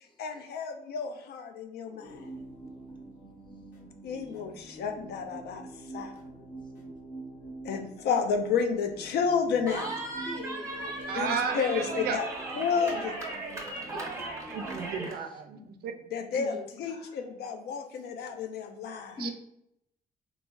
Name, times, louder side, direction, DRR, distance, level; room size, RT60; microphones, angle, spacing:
voice 1, 0.2-2.3 4.0-5.6 5.9-6.1 7.6-9.9 11.1-11.3 11.5-12.3 12.5-13.2 16.1-19.2, left 6 dB, 85° left, 6 dB, 0.4 m, -31 dB
voice 2, 1.9-2.9 4.3-4.4 6.2-6.9 10.3-11.2 13.9-14.6 16.4-17.1 19.2-19.3, left 2 dB, 30° left, 1 dB, 0.6 m, -44 dB
sound 1, 2.0-14.8, right 2 dB, 55° left, 1.0 m, -46 dB
Cheering, 9.7-15.2, right 2 dB, 20° right, 0.8 m, -37 dB
voice 3, 11.1-12.2 14.5-15.9 19.2-19.3, right 7 dB, 75° right, 7 dB, 0.4 m, -33 dB
3.5 x 2.0 x 2.2 m, 0.77 s
cardioid pair, 105°, 16 cm